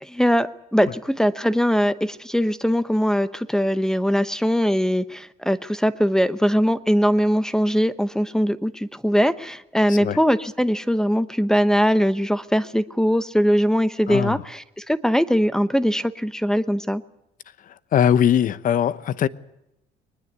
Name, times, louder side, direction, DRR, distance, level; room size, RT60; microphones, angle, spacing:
voice 1, 0.0-17.0, equal, 5° left, 0.9 m, -21 dB
voice 2, 14.1-14.4 17.7-19.3, left 9 dB, 55° left, 1.0 m, -21 dB
22.0 x 20.0 x 8.2 m
cardioid pair, 110°, 17 cm